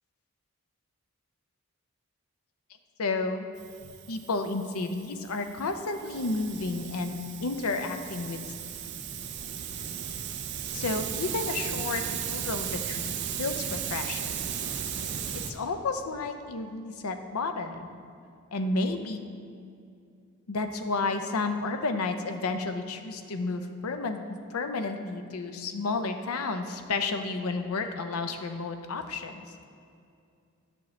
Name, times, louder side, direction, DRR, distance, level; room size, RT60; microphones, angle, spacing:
voice 1, 3.0-3.4 4.1-8.4 10.7-14.3 15.3-17.9 18.5-19.2 20.5-24.2 24.5-29.4, left 3 dB, 75° left, 7 dB, 0.6 m, -31 dB
Hiss, 3.6-15.5, right 8 dB, 50° right, 0.4 m, -36 dB
9.7 x 6.2 x 3.1 m, 2.5 s
head